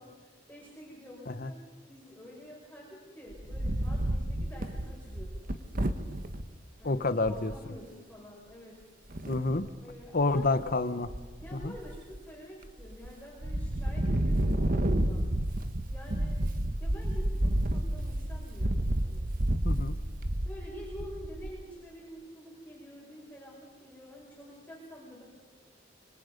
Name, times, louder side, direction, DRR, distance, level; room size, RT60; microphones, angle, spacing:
voice 1, 0.0-1.6 1.9-5.4 6.8-8.8 9.8-10.5 11.4-15.3 15.9-16.4 16.8-19.3 20.4-25.2, equal, 10° left, -5 dB, 5.3 m, -48 dB
Wind, 3.3-6.4 7.0-7.1 7.3-7.6 9.1-9.7 10.2-10.7 11.0-12.2 12.7-13.1 13.4-21.6, right 1 dB, 45° right, 1.4 m, -30 dB
voice 2, 6.8-7.5 9.3-9.6 10.1-11.1 11.5-11.7 19.6-20.0, left 3 dB, 50° left, 12 dB, 1.1 m, -28 dB
26.0 x 24.0 x 5.3 m, 1.4 s
head